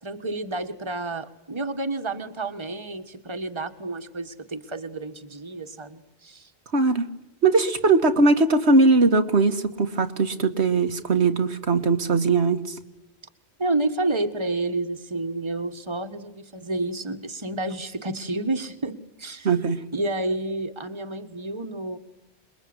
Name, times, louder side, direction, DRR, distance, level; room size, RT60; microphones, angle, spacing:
voice 1, 0.0-6.5 13.6-19.5 19.9-22.0, right 2 dB, 25° right, 7 dB, 1.7 m, -30 dB
voice 2, 6.7-7.1 7.4-12.8 19.4-19.8, right 3 dB, 80° right, 7 dB, 1.9 m, -20 dB
28.0 x 22.0 x 9.8 m, 0.91 s
omnidirectional pair, 1.1 m